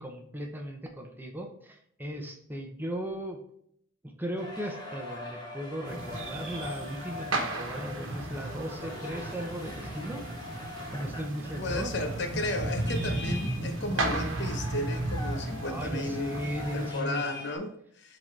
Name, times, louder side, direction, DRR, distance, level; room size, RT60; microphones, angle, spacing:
voice 1, 0.0-3.4 4.0-10.2 10.9-11.9 15.6-17.2, equal, 10° right, 2 dB, 0.8 m, -37 dB
sound 1, 4.4-17.6, left 3 dB, 20° left, 1.2 m, -43 dB
sound 2, 5.9-16.9, right 2 dB, 75° right, 1.1 m, -34 dB
voice 2, 11.6-16.4 16.7-18.2, left 2 dB, 60° left, 6 dB, 0.8 m, -34 dB
7.7 x 3.9 x 3.3 m, 0.69 s
head